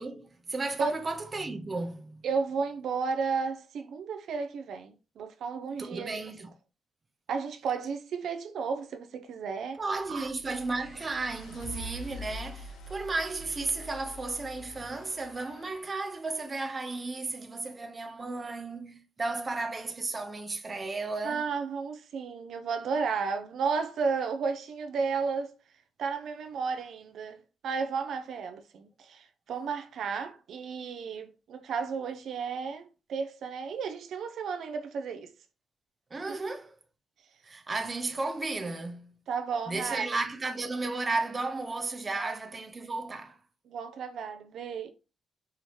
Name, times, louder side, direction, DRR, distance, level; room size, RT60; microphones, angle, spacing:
voice 1, 0.0-2.2 5.8-6.5 9.8-21.5 36.1-36.7 37.4-39.2 39.7-43.4, right 3 dB, 25° right, 0.6 m, -34 dB
voice 2, 2.2-6.2 7.3-9.8 10.1-10.3 21.2-25.5 26.0-27.4 27.6-35.3 39.3-40.1 42.2-42.3 43.7-44.9, right 5 dB, 70° right, 0.4 m, -33 dB
sound 1, 10.0-16.1, left 1 dB, 85° left, 0.7 m, -45 dB
4.8 x 2.8 x 3.0 m
cardioid pair, 130°, 0 cm